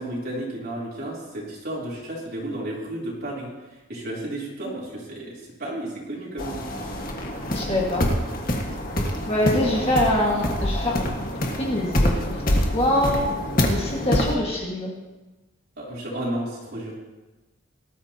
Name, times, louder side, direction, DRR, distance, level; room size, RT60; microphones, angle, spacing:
voice 1, 0.0-3.5 3.9-6.6 9.4-9.8 15.8-17.0, right 1 dB, 50° right, -5 dB, 3.4 m, -32 dB
sound 1, 6.4-14.3, equal, 45° left, 1.7 m, -25 dB
voice 2, 7.5-8.0 9.3-11.0 11.5-13.3 13.6-14.9, left 1 dB, 30° left, -3 dB, 1.8 m, -24 dB
19.5 x 12.5 x 2.9 m, 1.2 s
head